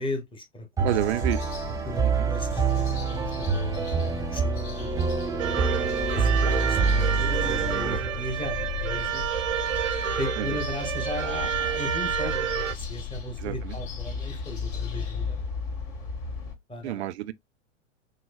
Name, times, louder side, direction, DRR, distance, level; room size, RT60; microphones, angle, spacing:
voice 1, 0.0-1.0 1.6-4.9 6.1-9.2 10.2-15.4 16.7-17.1, left 1 dB, 15° left, 1.3 m, -36 dB
sound 1, 0.8-8.0, right 4 dB, 10° right, 0.5 m, -26 dB
voice 2, 0.8-1.4 2.0-2.3 10.4-10.6 13.4-13.7 16.8-17.3, right 15 dB, 60° right, 0.6 m, -29 dB
sound 2, 0.9-16.5, left 4 dB, 55° left, 2.6 m, -35 dB
sound 3, 5.4-12.7, right 9 dB, 85° right, 0.9 m, -29 dB
6.3 x 2.3 x 2.2 m
hypercardioid pair, 105°, 37 cm